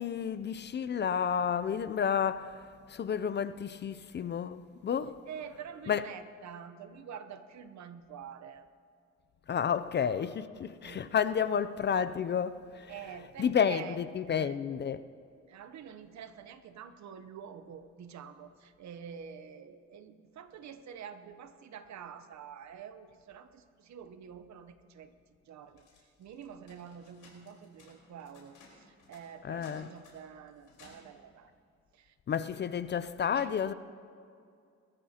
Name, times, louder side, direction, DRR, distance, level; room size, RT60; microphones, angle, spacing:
voice 1, 0.0-2.6 2.9-5.1 5.9-6.0 9.5-12.9 13.4-15.0 29.4-29.9 32.3-33.7, left 7 dB, 35° left, 0.4 m, -31 dB
voice 2, 5.3-8.7 10.8-11.1 12.9-14.0 14.2-14.6 15.5-25.1 25.4-25.9 26.2-31.5 31.9-32.6 33.3-33.5, right 8 dB, 65° right, 0.9 m, -47 dB
sound 1, 25.7-31.2, left 3 dB, 85° left, 4.2 m, -59 dB
22.0 x 13.5 x 2.9 m
cardioid pair, 105°, 30 cm